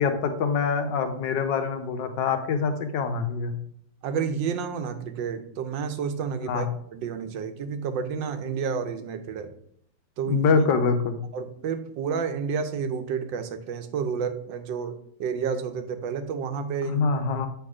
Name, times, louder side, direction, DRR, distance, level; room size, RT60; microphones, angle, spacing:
voice 1, 0.0-3.6 6.5-6.6 10.3-11.2 16.9-17.5, left 5 dB, 75° left, 7 dB, 1.4 m, -24 dB
voice 2, 4.0-9.5 10.2-10.5 11.3-17.1, right 6 dB, 85° right, 8 dB, 1.4 m, -30 dB
7.9 x 3.5 x 4.9 m, 0.66 s
omnidirectional pair, 2.0 m